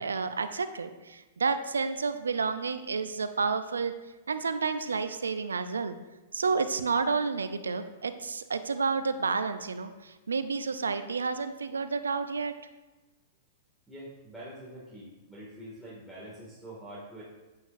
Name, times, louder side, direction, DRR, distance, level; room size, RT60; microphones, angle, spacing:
voice 1, 0.0-3.9 4.3-5.9 6.3-12.5, right 4 dB, 85° right, 11 dB, 0.6 m, -30 dB
voice 2, 13.9-17.2, right 1 dB, ahead, -8 dB, 2.3 m, -45 dB
9.2 x 8.4 x 2.7 m, 1.2 s
hypercardioid pair, 105°, 0 cm